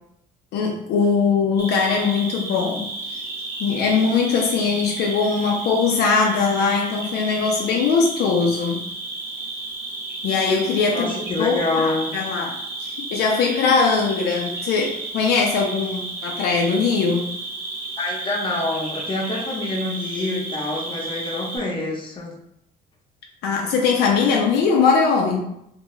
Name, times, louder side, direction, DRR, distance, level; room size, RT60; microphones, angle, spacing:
voice 1, 0.5-2.9 3.6-8.8 10.2-11.1 11.4-17.3 23.4-25.4, left 5 dB, 75° left, 0 dB, 0.5 m, -21 dB
Cricket, 1.6-21.6, right 2 dB, 15° right, 0.9 m, -32 dB
voice 2, 10.9-12.1 18.0-22.3, left 2 dB, 30° left, -2 dB, 0.8 m, -26 dB
2.6 x 2.2 x 3.0 m, 0.77 s
cardioid pair, 110°, 17 cm